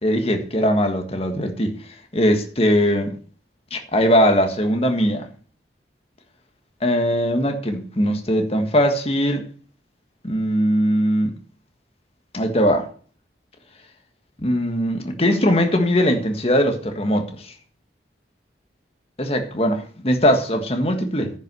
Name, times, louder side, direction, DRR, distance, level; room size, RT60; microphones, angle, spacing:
voice 1, 0.0-1.8 2.1-3.1 3.7-5.3 6.8-9.4 10.2-11.4 12.3-12.9 14.4-17.5 19.2-21.3, equal, 35° left, 1.6 m, -20 dB
10.5 x 5.8 x 7.7 m
head